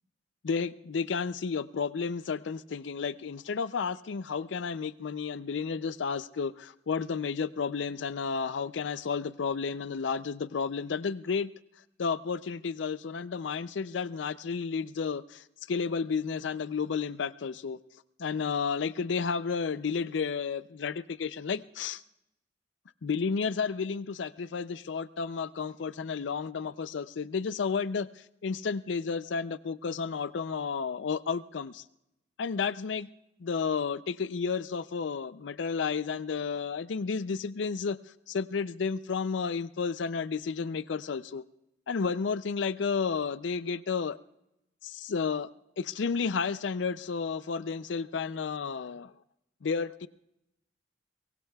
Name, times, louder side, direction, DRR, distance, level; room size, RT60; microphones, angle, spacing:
voice 1, 0.4-11.5 12.0-17.8 18.2-22.0 23.0-28.1 28.4-31.8 32.4-33.1 33.4-38.0 38.3-41.4 41.9-44.2 44.8-45.5 45.8-49.1 49.6-50.1, left 5 dB, 90° left, 15 dB, 0.5 m, -32 dB
23.0 x 22.5 x 2.3 m, 0.86 s
head